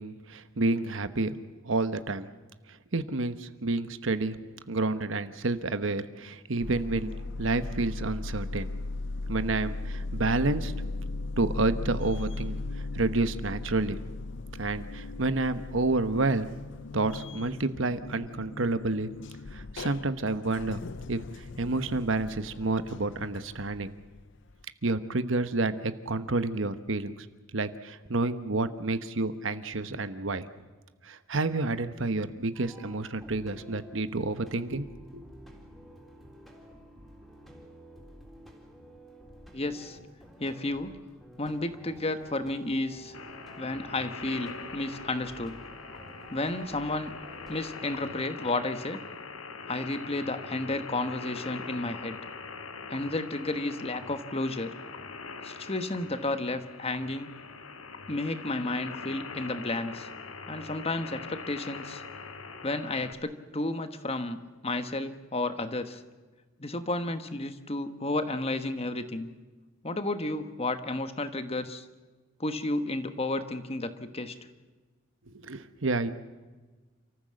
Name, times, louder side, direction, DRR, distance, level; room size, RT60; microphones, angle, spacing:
voice 1, 0.0-1.4 1.6-2.3 2.9-7.1 7.4-8.7 9.3-10.7 11.4-12.6 12.9-14.0 14.6-16.5 16.9-19.1 19.5-20.8 21.1-21.2 21.6-23.9 24.8-27.3 27.5-30.5 31.0-34.9 35.1-35.2 75.4-76.1, right 3 dB, 65° right, 12 dB, 1.1 m, -29 dB
sound 1, 6.6-24.6, left 2 dB, 60° left, 0.6 m, -38 dB
sound 2, 32.5-48.0, right 1 dB, ahead, 3.7 m, -51 dB
voice 2, 39.5-40.0 40.4-40.9 41.4-43.1 43.6-45.6 46.3-47.1 47.5-49.0 49.7-52.2 52.9-54.7 55.4-57.3 58.1-60.1 60.5-62.0 62.6-66.0 66.6-69.3 69.8-71.8 72.4-74.3, left 2 dB, 30° left, 10 dB, 1.3 m, -32 dB
sound 3, 43.1-63.1, left 4 dB, 85° left, 1.7 m, -43 dB
29.0 x 14.5 x 7.7 m, 1.3 s
head